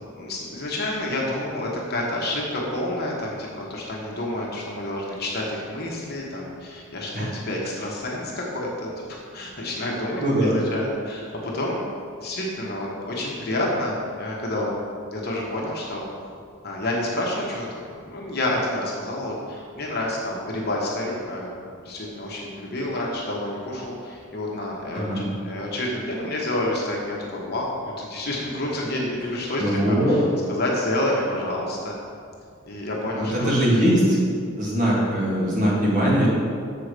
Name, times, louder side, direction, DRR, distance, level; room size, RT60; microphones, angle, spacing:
voice 1, 0.1-11.8 12.2-14.7 15.1-16.1 16.6-17.7 18.0-32.0 32.7-33.5, left 1 dB, 45° left, -3 dB, 1.2 m, -29 dB
voice 2, 10.2-10.5 24.9-25.3 29.6-30.2 33.2-34.2 34.6-36.3, equal, 35° right, -6 dB, 2.2 m, -21 dB
6.9 x 4.8 x 6.6 m, 2.2 s
head